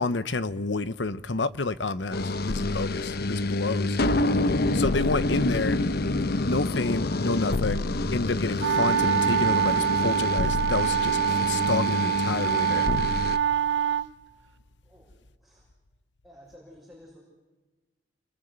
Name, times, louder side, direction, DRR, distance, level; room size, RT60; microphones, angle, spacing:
voice 1, 0.0-4.0 4.7-5.8 6.5-7.8 8.1-12.9, left 3 dB, 85° left, 1.0 m, -29 dB
sound 1, 2.1-13.4, left 2 dB, 60° left, 0.9 m, -27 dB
sound 2, 8.6-14.1, right 8 dB, 85° right, 0.8 m, -25 dB
voice 2, 14.8-15.7 16.2-17.2, left 1 dB, ahead, 6.4 m, -52 dB
29.0 x 22.0 x 8.2 m
head